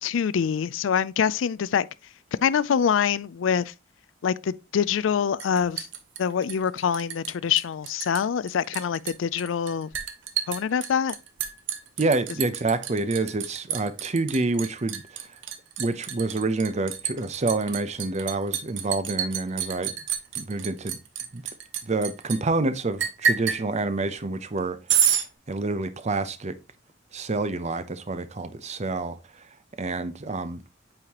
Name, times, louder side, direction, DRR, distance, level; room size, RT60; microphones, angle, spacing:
voice 1, 0.0-1.9 2.4-3.7 4.2-5.9 6.2-9.9 10.5-11.2, left 7 dB, 80° left, 0.4 m, -25 dB
Liquid, 5.4-7.3 7.6-8.2 8.5-22.4 23.0-23.6 24.9-25.2, right 8 dB, 70° right, 1.0 m, -29 dB
voice 2, 12.0-15.4 15.8-19.9 20.4-21.0 21.3-21.4 21.8-24.8 25.5-26.6 27.1-29.2 29.8-30.6, right 3 dB, 35° right, 0.6 m, -27 dB
8.7 x 4.8 x 2.9 m
head